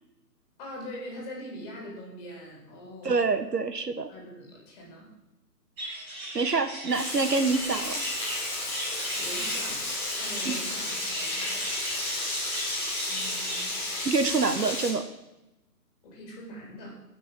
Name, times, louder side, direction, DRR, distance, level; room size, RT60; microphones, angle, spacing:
voice 1, 0.6-3.3 4.1-5.1 9.1-9.9 10.2-11.7 13.1-13.8 16.0-17.0, equal, 25° left, -2 dB, 3.7 m, -42 dB
voice 2, 3.0-4.1 6.3-8.0 10.4-10.6 14.0-15.0, right 4 dB, 75° right, 9 dB, 1.4 m, -26 dB
sound 1, 5.8-14.0, right 1 dB, 25° right, 5.5 m, -37 dB
Frying (food), 6.9-14.9, left 2 dB, 5° left, 1.5 m, -32 dB
18.0 x 6.1 x 5.3 m, 0.93 s
figure-of-eight pair, 145°, 48 cm